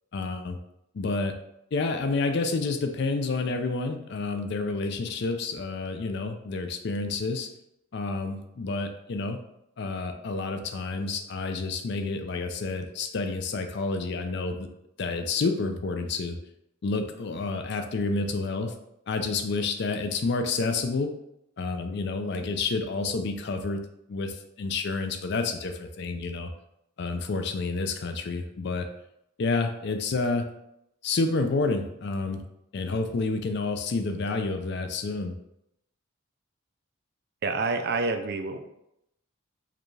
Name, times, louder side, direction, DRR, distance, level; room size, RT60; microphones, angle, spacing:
voice 1, 0.1-0.6 0.9-1.4 1.7-7.5 7.9-9.4 9.8-14.7 15.0-16.4 16.8-18.7 19.1-21.1 21.6-23.8 24.1-26.5 27.0-28.9 29.4-30.5 31.0-32.4 32.7-35.3, left 3 dB, 55° left, 6 dB, 0.4 m, -29 dB
voice 2, 37.4-38.6, right 3 dB, 50° right, 7 dB, 0.4 m, -27 dB
4.8 x 2.3 x 3.2 m, 0.81 s
head